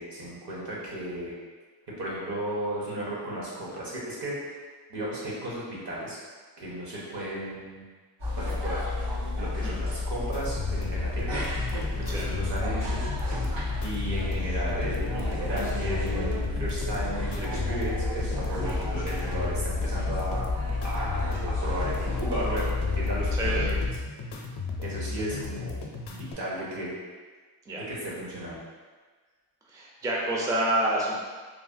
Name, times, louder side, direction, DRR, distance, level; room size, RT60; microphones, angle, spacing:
voice 1, 0.0-1.3 2.0-4.3 4.9-6.2 6.6-7.8 8.4-8.8 9.4-11.6 12.0-13.1 13.8-20.5 20.8-23.7 24.8-25.7 26.1-26.9 27.9-28.6, right 1 dB, 70° right, -6 dB, 1.0 m, -34 dB
sound 1, 8.2-23.9, left 2 dB, 85° right, 1.4 m, -30 dB
sound 2, 10.3-26.3, left 3 dB, 65° left, 0.5 m, -36 dB
voice 2, 23.3-23.7 27.7-27.8 29.7-31.2, right 1 dB, 10° right, -4 dB, 0.3 m, -28 dB
3.1 x 2.2 x 2.5 m, 1.4 s
wide cardioid pair, 115°, 43 cm